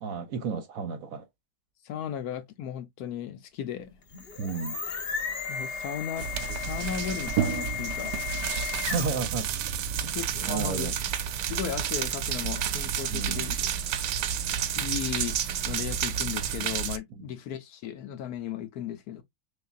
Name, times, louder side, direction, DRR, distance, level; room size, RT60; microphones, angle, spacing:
voice 1, 0.0-1.2 4.4-4.8 8.9-9.5 10.5-10.9 13.1-13.5 17.1-17.2, right 5 dB, 60° right, 1.1 m, -32 dB
voice 2, 1.8-4.0 5.5-8.1 10.1-10.9 11.4-13.7 14.7-15.4 15.6-19.2, left 9 dB, 70° left, 1.0 m, -36 dB
sound 1, 4.0-9.3, left 7 dB, 45° left, 0.9 m, -35 dB
sound 2, 6.2-17.0, right 9 dB, 80° right, 1.2 m, -30 dB
6.5 x 2.5 x 2.4 m
omnidirectional pair, 1.9 m